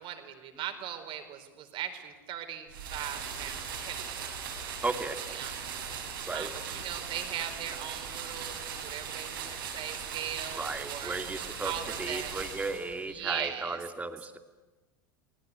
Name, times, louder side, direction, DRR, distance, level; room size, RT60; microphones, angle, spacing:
voice 1, 0.0-4.1 5.3-5.9 6.3-11.2 11.6-12.4 13.1-13.8, right 10 dB, 50° right, 7 dB, 4.5 m, -39 dB
sound 1, 2.7-13.1, right 6 dB, 85° right, 6.8 m, -39 dB
voice 2, 4.8-5.2 6.3-6.5 10.5-14.4, right 3 dB, 15° right, 7 dB, 2.5 m, -35 dB
29.5 x 19.5 x 9.5 m, 1.2 s
hypercardioid pair, 90°, 11 cm